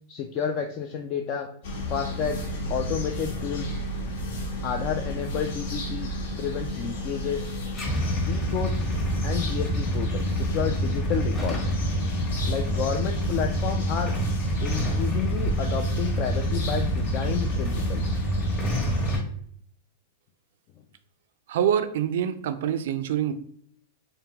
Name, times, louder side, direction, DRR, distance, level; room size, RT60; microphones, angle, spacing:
voice 1, 0.1-1.5 1.9-2.4 2.7-3.8 4.6-6.1 6.4-7.5 8.3-8.9 9.2-11.8 12.4-14.1 14.6-18.1, left 7 dB, 35° left, 4 dB, 0.3 m, -31 dB
sound 1, 1.6-19.2, left 1 dB, 70° left, 1.1 m, -33 dB
Motorcycle / Engine starting / Idling, 7.8-19.2, right 1 dB, 15° left, 0.9 m, -27 dB
voice 2, 21.5-23.3, right 9 dB, 65° right, 11 dB, 0.4 m, -25 dB
3.6 x 3.4 x 2.9 m, 0.62 s
supercardioid pair, 165°, 0 cm